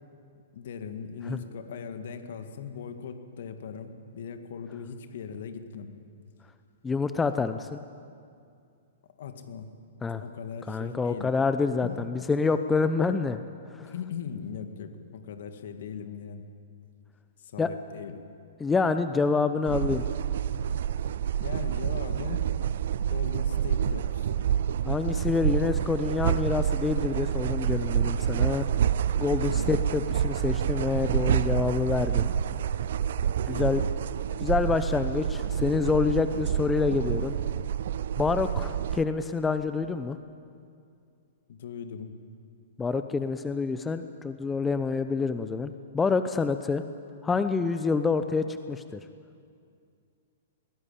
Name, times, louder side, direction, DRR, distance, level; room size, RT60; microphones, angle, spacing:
voice 1, 0.5-5.9 9.2-9.7 10.2-11.4 11.8-12.1 13.8-16.5 17.4-18.2 21.4-22.4 23.1-24.4 29.5-29.8 33.4-33.9 41.5-42.1, left 6 dB, 60° left, 8 dB, 2.0 m, -39 dB
voice 2, 6.8-7.8 10.0-10.2 10.7-13.4 13.8-13.9 17.6-17.7 18.6-20.0 24.9-28.6 29.2-32.3 33.5-33.8 34.4-37.3 38.2-40.2 42.8-46.8 47.2-48.8, left 4 dB, 15° left, 10 dB, 0.8 m, -27 dB
sound 1, 19.7-39.0, right 9 dB, 60° right, 0.6 m, -28 dB
21.5 x 17.5 x 8.7 m, 2.4 s
figure-of-eight pair, 110°, 0 cm